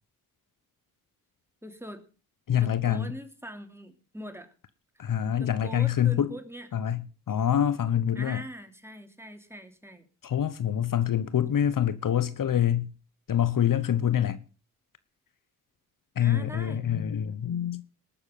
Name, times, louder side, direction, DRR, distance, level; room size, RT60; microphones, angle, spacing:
voice 1, 1.6-2.0 2.5-4.5 5.3-6.7 8.1-10.1 16.2-16.9, equal, 5° right, 3.1 m, -42 dB
voice 2, 2.5-3.1 5.0-6.3 6.7-7.0 7.3-8.4 10.2-12.9 13.3-14.4 16.2-17.8, left 10 dB, 60° left, 1.0 m, -25 dB
20.0 x 6.9 x 5.5 m
supercardioid pair, 45°, 37 cm